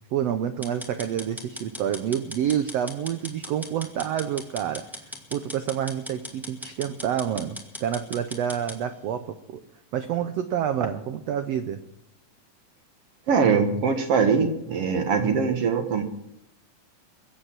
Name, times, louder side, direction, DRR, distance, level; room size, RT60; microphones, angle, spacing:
voice 1, 0.1-4.8 5.3-9.3 9.9-11.8, right 9 dB, 80° right, 9 dB, 1.4 m, -28 dB
sound 1, 0.6-8.8, equal, ahead, 1.1 m, -39 dB
voice 2, 13.3-16.0, right 5 dB, 55° right, 6 dB, 1.9 m, -22 dB
22.5 x 8.1 x 7.4 m, 0.81 s
omnidirectional pair, 3.9 m